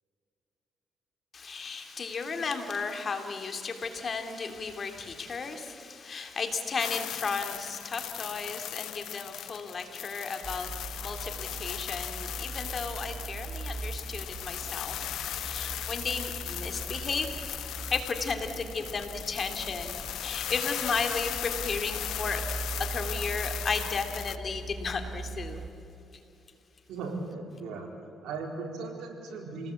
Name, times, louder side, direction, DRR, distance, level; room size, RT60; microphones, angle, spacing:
voice 1, 1.3-15.1 15.3-17.3 17.7-22.4 22.9-25.6, left 4 dB, 45° left, 6 dB, 3.0 m, -34 dB
sound 1, 6.8-24.4, left 12 dB, 80° left, 0.6 m, -37 dB
sound 2, 10.4-25.7, right 3 dB, 30° right, 2.0 m, -40 dB
voice 2, 26.9-27.9 28.2-29.7, right 3 dB, 85° right, 2 dB, 4.3 m, -37 dB
28.0 x 19.0 x 8.5 m, 2.8 s
cardioid pair, 90°, 0 cm